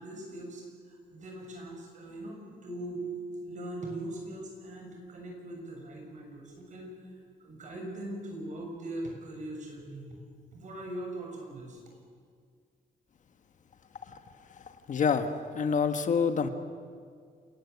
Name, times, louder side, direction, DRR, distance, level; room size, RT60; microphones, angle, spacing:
voice 1, 0.0-6.9 7.4-10.1 10.5-11.8, right 1 dB, 50° right, 1 dB, 7.1 m, -40 dB
voice 2, 14.5-16.5, left 6 dB, 50° left, 9 dB, 1.4 m, -28 dB
28.0 x 18.0 x 8.2 m, 2.1 s
wide cardioid pair, 150°, 16 cm